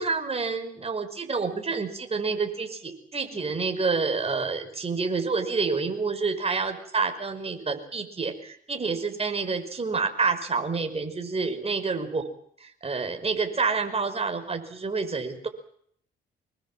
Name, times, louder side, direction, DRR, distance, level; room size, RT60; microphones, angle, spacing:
voice 1, 0.0-12.2 12.6-15.5, right 4 dB, 30° right, 6 dB, 5.4 m, -28 dB
26.0 x 21.0 x 7.6 m, 0.66 s
cardioid pair, 90°, 20 cm